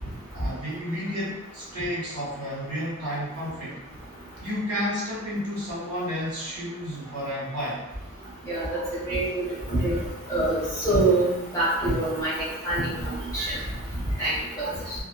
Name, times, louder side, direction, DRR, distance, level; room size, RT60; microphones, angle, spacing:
voice 1, 0.3-3.8 4.4-7.8, equal, 85° right, -7 dB, 1.3 m, -31 dB
voice 2, 9.1-9.4 9.7-10.0 10.3-11.2 11.5-13.6 14.2-14.9, right 2 dB, 15° left, -11 dB, 1.2 m, -25 dB
2.6 x 2.4 x 2.3 m, 0.96 s
head